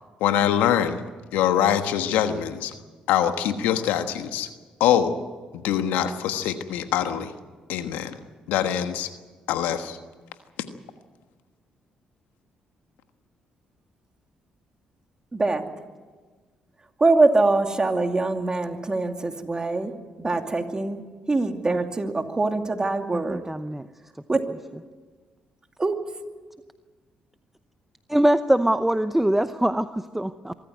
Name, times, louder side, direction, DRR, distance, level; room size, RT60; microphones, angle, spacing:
voice 1, 0.2-1.0 1.3-2.7 3.1-4.5 4.8-5.1 5.5-7.3 7.7-8.2 8.5-9.1 9.5-10.0, left 10 dB, 85° left, 8 dB, 1.3 m, -23 dB
voice 2, 15.3-15.6 17.0-19.9 20.2-21.0 21.3-23.4 24.3-24.4 25.8-25.9, right 3 dB, 25° right, 5 dB, 2.6 m, -23 dB
voice 3, 23.3-23.9 28.1-30.5, right 1 dB, 5° right, 11 dB, 0.8 m, -22 dB
24.5 x 13.5 x 9.4 m, 1.4 s
supercardioid pair, 60°, 3 cm